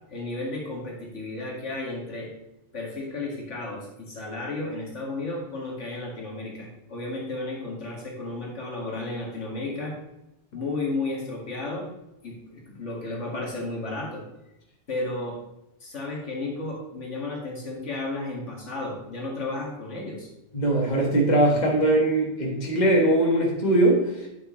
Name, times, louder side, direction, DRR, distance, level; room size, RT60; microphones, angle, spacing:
voice 1, 0.1-2.3 2.7-10.0 10.5-11.9 12.2-14.2 14.9-15.4 15.8-20.3, left 2 dB, 80° left, -2 dB, 2.4 m, -33 dB
voice 2, 20.5-24.0, right 1 dB, 35° left, -2 dB, 1.8 m, -21 dB
9.1 x 8.0 x 3.2 m, 0.90 s
omnidirectional pair, 1.2 m